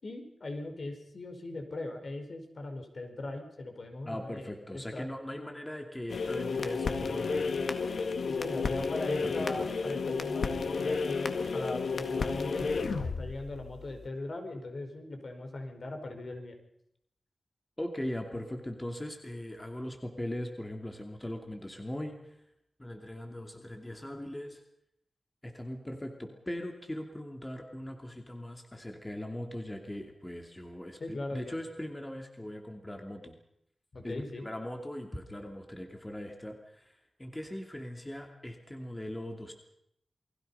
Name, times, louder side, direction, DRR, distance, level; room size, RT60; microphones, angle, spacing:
voice 1, 0.0-5.1 8.2-16.6 31.0-31.6 33.9-34.5, left 2 dB, 55° left, 5 dB, 4.7 m, -39 dB
voice 2, 4.1-7.7 9.2-9.7 17.8-22.4 22.8-24.6 25.4-33.3 34.0-39.5, left 1 dB, 15° left, 4 dB, 2.6 m, -40 dB
sound 1, 6.1-14.1, left 4 dB, 90° left, 1.9 m, -32 dB
28.5 x 21.5 x 5.6 m, 0.76 s
wide cardioid pair, 125°, 0 cm